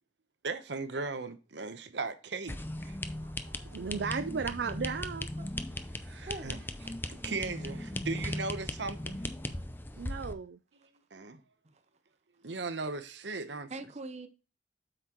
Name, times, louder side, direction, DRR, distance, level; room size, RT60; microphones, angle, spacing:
voice 1, 0.4-2.6 2.8-3.0 3.8-3.9 6.0-6.6 7.1-9.2 11.1-11.4 12.4-13.7, right 3 dB, 90° right, 1.0 m, -37 dB
sound 1, 2.5-10.3, left 1 dB, 10° left, 0.6 m, -38 dB
voice 2, 3.2-5.3 10.0-10.6, right 5 dB, 70° right, 0.5 m, -35 dB
voice 3, 6.3-7.2 7.5-7.8 11.6-11.8 13.7-14.3, right 2 dB, 40° right, 0.8 m, -44 dB
8.1 x 5.9 x 3.0 m
head